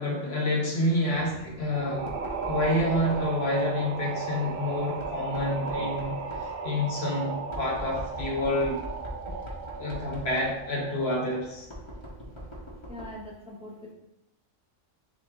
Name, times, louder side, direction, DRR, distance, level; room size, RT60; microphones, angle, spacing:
voice 1, 0.0-2.1 2.5-8.8 9.8-11.7, left 1 dB, 55° left, -1 dB, 1.1 m, -28 dB
Knock, 1.1-13.3, equal, 30° left, 0.7 m, -43 dB
sound 1, 1.7-11.5, right 5 dB, 60° right, 0.6 m, -35 dB
voice 2, 12.9-13.9, left 1 dB, 10° right, -3 dB, 0.4 m, -42 dB
6.1 x 2.1 x 3.6 m, 0.85 s
omnidirectional pair, 1.3 m